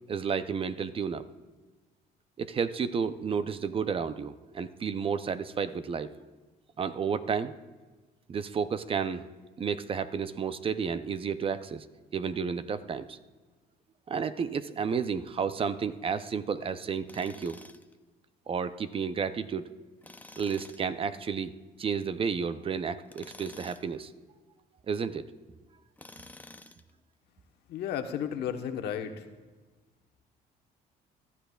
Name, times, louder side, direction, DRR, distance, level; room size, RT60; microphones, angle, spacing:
voice 1, 0.1-1.3 2.4-6.1 6.8-7.5 8.3-9.3 9.6-11.9 12.1-13.2 14.1-17.6 18.5-19.7 20.4-21.5 21.8-24.1 24.9-25.2, right 6 dB, 35° right, 12 dB, 0.5 m, -31 dB
Tools, 17.1-17.9 20.0-20.9 23.1-23.9 26.0-26.9, left 2 dB, 10° left, 0.6 m, -50 dB
voice 2, 27.7-29.3, left 8 dB, 75° left, 6 dB, 1.1 m, -33 dB
22.5 x 12.5 x 2.3 m, 1.3 s
cardioid pair, 110°, 17 cm